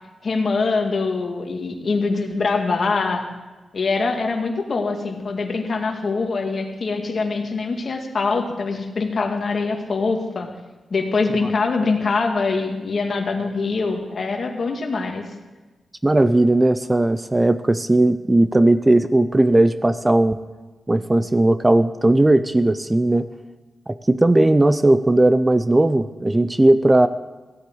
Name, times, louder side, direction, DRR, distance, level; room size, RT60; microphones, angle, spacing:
voice 1, 0.2-3.2 3.7-10.5 10.9-15.2, left 4 dB, 50° left, 3 dB, 2.1 m, -23 dB
voice 2, 16.0-20.4 20.9-23.3 23.9-27.1, right 1 dB, 15° right, 12 dB, 0.5 m, -17 dB
16.0 x 8.4 x 7.9 m, 1.2 s
wide cardioid pair, 100°, 0 cm